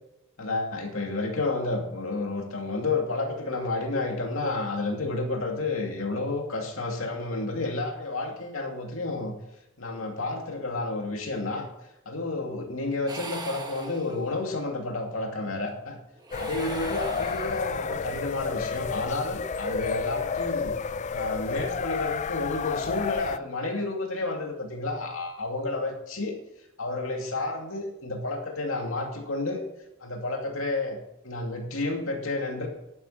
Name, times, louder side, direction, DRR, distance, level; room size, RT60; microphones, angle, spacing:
voice 1, 0.4-9.3 9.8-11.7 12.1-16.0 16.3-20.7 21.1-26.4 26.8-29.6 30.0-31.0 31.2-32.7, left 2 dB, 80° left, 2 dB, 2.4 m, -30 dB
sound 1, 13.1-14.5 16.2-18.0, right 3 dB, 20° right, 1.1 m, -41 dB
sound 2, 16.3-23.4, left 6 dB, 35° left, 0.3 m, -31 dB
11.0 x 9.3 x 5.6 m, 0.88 s
head